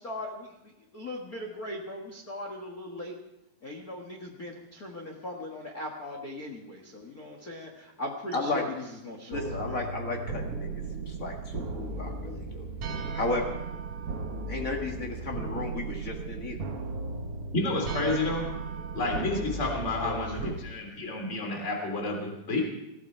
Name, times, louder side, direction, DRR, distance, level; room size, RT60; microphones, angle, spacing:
voice 1, 0.0-0.5 0.9-3.1 3.6-9.8 20.0-20.5, left 1 dB, 80° left, 1 dB, 0.8 m, -39 dB
voice 2, 8.3-8.6 9.3-10.7 10.9-12.6 13.1-13.5 14.5-16.6, left 2 dB, 50° left, 1 dB, 0.9 m, -33 dB
sound 1, 9.3-20.6, right 3 dB, 65° right, 1.4 m, -36 dB
voice 3, 17.5-18.5 18.9-22.6, left 2 dB, 20° left, 1 dB, 3.1 m, -30 dB
20.5 x 15.0 x 4.5 m, 0.87 s
omnidirectional pair, 4.5 m